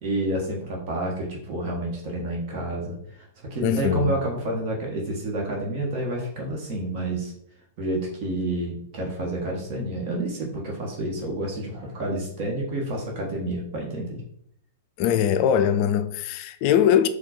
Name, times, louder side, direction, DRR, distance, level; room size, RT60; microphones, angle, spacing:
voice 1, 0.0-7.3 7.8-14.2, right 1 dB, 45° right, 1.2 m, -29 dB
voice 2, 3.6-4.1 15.0-17.1, left 9 dB, 45° left, 0.3 m, -21 dB
4.2 x 2.3 x 4.1 m
figure-of-eight pair, 100°, 0 cm